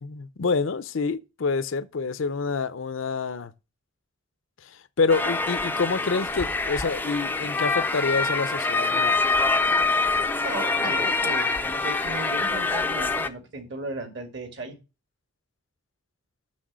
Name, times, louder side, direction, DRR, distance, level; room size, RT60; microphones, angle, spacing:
voice 1, 0.0-3.5 5.0-9.2, left 4 dB, 70° left, 0.6 m, -27 dB
sound 1, 5.1-13.3, left 3 dB, 10° left, 0.4 m, -25 dB
voice 2, 10.4-14.8, right 2 dB, 60° right, 2.0 m, -36 dB
6.3 x 6.1 x 6.2 m
head